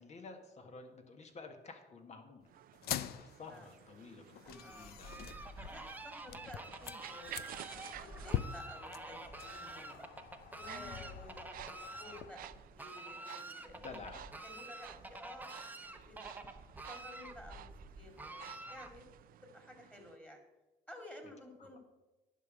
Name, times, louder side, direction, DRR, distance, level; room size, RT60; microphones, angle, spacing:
voice 1, 0.0-2.5 2.9-5.1 10.6-11.0 13.8-14.3 21.7-21.8, left 4 dB, 40° left, 6 dB, 1.5 m, -51 dB
sound 1, 2.5-20.2, right 12 dB, 60° right, 0.5 m, -54 dB
sound 2, 2.7-12.3, left 11 dB, 65° left, 0.6 m, -45 dB
voice 2, 4.4-4.9 5.7-10.1 10.5-13.8 14.4-16.3 16.9-17.7 17.9-19.2 19.4-20.4 20.9-21.8, left 1 dB, 10° left, 4 dB, 2.3 m, -54 dB
Fowl, 4.5-19.2, right 2 dB, 10° right, 0.9 m, -49 dB
11.0 x 5.3 x 8.4 m, 1.1 s
cardioid pair, 110°, 17 cm